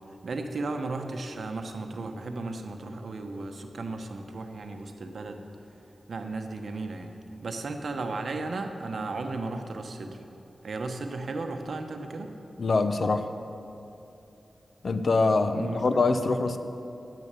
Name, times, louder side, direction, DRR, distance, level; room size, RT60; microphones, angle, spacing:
voice 1, 0.0-5.4 6.1-7.1 7.4-10.2 10.6-12.3 15.5-15.8 16.1-16.3, right 3 dB, 70° right, 5 dB, 0.9 m, -35 dB
voice 2, 12.6-13.3 14.8-16.6, left 3 dB, 60° left, 9 dB, 0.6 m, -24 dB
10.5 x 8.4 x 6.8 m, 2.9 s
wide cardioid pair, 120°, 0 cm